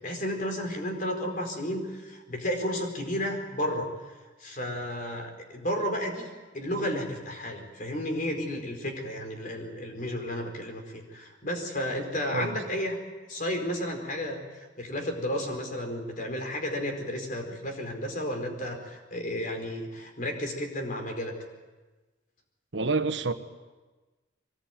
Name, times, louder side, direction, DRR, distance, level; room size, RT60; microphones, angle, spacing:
voice 1, 0.0-3.9 4.4-6.3 6.5-13.0 13.3-21.3, equal, 45° left, 4.5 m, -32 dB
voice 2, 22.7-23.3, right 3 dB, 70° right, 1.4 m, -28 dB
23.5 x 19.5 x 9.2 m
head